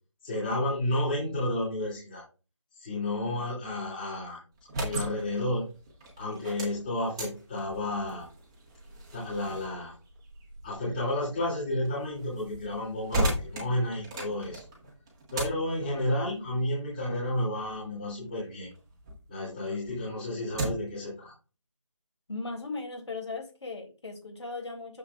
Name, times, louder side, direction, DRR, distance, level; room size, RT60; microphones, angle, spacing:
voice 1, 0.2-2.2 2.7-4.4 4.8-5.7 6.2-8.3 9.1-9.9 10.6-14.6 15.3-18.7 19.3-21.3, left 1 dB, 15° left, -8 dB, 2.9 m, -31 dB
sound 1, 4.5-19.2 19.6-21.0, right 1 dB, 10° right, 1.2 m, -38 dB
voice 2, 22.3-25.0, left 3 dB, 60° left, 2 dB, 3.5 m, -37 dB
9.7 x 7.1 x 2.5 m, 0.34 s
figure-of-eight pair, 175°, 16 cm